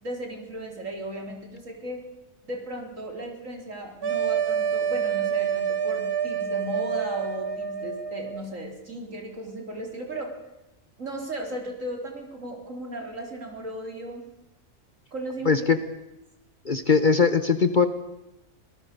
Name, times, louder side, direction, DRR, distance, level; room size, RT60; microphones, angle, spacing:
voice 1, 0.0-2.0 2.4-10.3 11.0-14.3 15.1-15.6, right 1 dB, 65° right, 2 dB, 4.1 m, -36 dB
sound 1, 4.0-8.4, right 7 dB, 45° right, 1.5 m, -27 dB
voice 2, 15.4-15.8 16.6-17.9, left 5 dB, 40° left, 10 dB, 1.1 m, -20 dB
25.0 x 18.5 x 6.8 m, 0.92 s
omnidirectional pair, 1.5 m